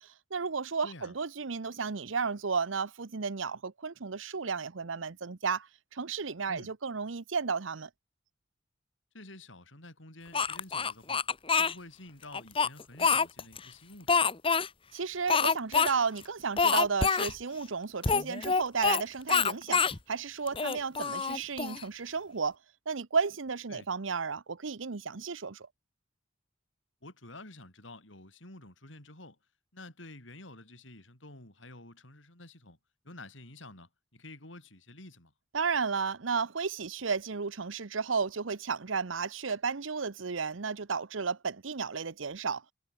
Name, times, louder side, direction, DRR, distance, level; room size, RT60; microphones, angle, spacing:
voice 1, 0.0-7.9 14.9-22.6 22.9-25.7 35.5-42.6, right 5 dB, 90° right, 0.9 m, -33 dB
voice 2, 0.8-1.1 6.5-6.7 9.1-11.3 11.6-14.3 23.7-23.9 27.0-29.4 29.7-32.8 33.0-35.3, left 2 dB, 80° left, 7.9 m, -50 dB
Speech, 10.3-11.7 12.3-13.6 14.1-14.7 15.3-15.9 16.2-16.3 16.6-17.3 18.0-19.0 19.3-20.0 20.5-21.8, left 5 dB, 25° left, 1.1 m, -26 dB
head